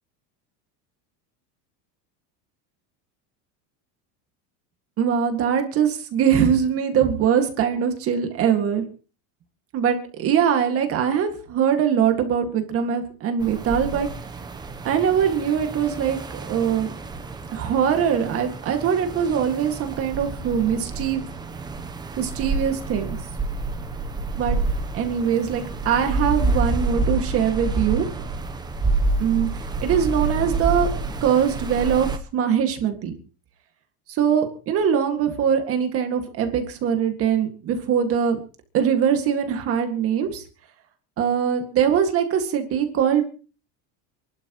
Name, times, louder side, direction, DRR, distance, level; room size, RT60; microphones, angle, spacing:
voice 1, 5.0-8.8 9.7-14.1 14.8-16.2 16.5-16.9 17.5-21.2 22.2-23.2 24.4-24.6 24.9-28.1 29.2-29.5 29.8-30.9 31.2-33.1 34.1-38.4 38.7-40.4 41.2-43.2, right 8 dB, 35° right, 5 dB, 2.0 m, -22 dB
sound 1, 13.4-32.2, right 3 dB, 10° right, 0.8 m, -28 dB
27.5 x 12.0 x 3.1 m, 0.37 s
cardioid pair, 175°, 41 cm